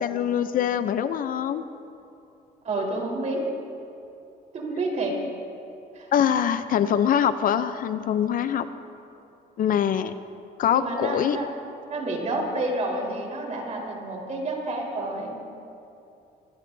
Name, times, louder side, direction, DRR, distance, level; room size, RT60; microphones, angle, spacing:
voice 1, 0.0-1.6 5.1-5.3 6.1-8.7 9.6-10.1 10.6-11.4, left 9 dB, 55° left, 11 dB, 0.6 m, -24 dB
voice 2, 2.6-3.4 4.5-5.2 5.9-6.1 10.7-11.4 11.9-15.4, right 2 dB, 45° right, -1 dB, 4.2 m, -29 dB
23.0 x 19.5 x 2.7 m, 2.7 s
cardioid pair, 110°, 17 cm